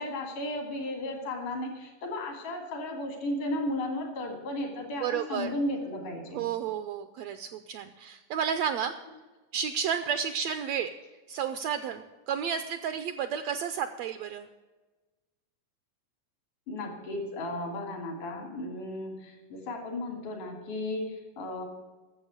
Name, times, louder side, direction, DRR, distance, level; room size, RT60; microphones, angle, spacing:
voice 1, 0.0-6.5 16.7-21.6, left 1 dB, 85° left, 2 dB, 4.4 m, -34 dB
voice 2, 5.0-5.5 6.3-9.0 9.5-11.0 11.3-14.5, right 8 dB, 80° right, 10 dB, 1.5 m, -32 dB
13.0 x 7.3 x 8.2 m, 1.2 s
omnidirectional pair, 3.5 m